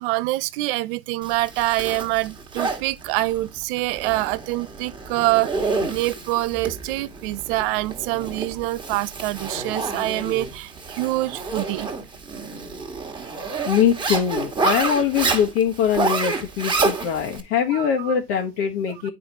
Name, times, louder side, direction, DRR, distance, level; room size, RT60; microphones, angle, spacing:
voice 1, 0.0-5.5 5.9-11.9 17.7-18.2 19.0-19.1, right 18 dB, 35° right, 0.5 m, -25 dB
Zipper (clothing), 1.2-17.4, right 4 dB, 10° right, 1.6 m, -29 dB
voice 2, 13.6-19.1, left 8 dB, 50° left, 1.5 m, -22 dB
8.6 x 5.2 x 2.8 m
hypercardioid pair, 105°, 47 cm